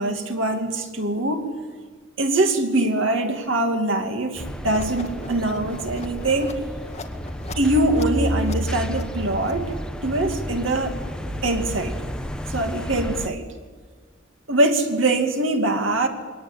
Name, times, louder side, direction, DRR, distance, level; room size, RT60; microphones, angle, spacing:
voice 1, 0.0-1.5 2.2-6.6 7.6-9.7 10.0-11.0 11.4-12.0 12.5-13.5 14.5-16.1, right 2 dB, 70° right, 5 dB, 2.6 m, -23 dB
sound 1, 4.4-13.3, equal, 5° left, 1.2 m, -31 dB
sound 2, 4.7-9.9, left 2 dB, 35° left, 2.0 m, -40 dB
23.0 x 19.0 x 8.8 m, 1.5 s
head